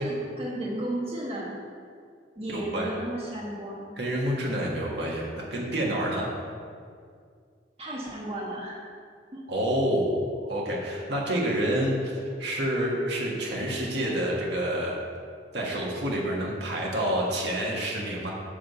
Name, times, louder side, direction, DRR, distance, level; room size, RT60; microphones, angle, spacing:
voice 1, 0.0-1.5 2.4-4.0 7.8-8.8 9.3-9.4, right 1 dB, 35° right, -6 dB, 1.2 m, -34 dB
voice 2, 2.5-2.9 4.0-6.3 9.5-10.1 10.4-15.0 15.5-18.3, right 1 dB, 70° right, -3 dB, 1.6 m, -28 dB
8.7 x 3.8 x 6.9 m, 2.2 s
head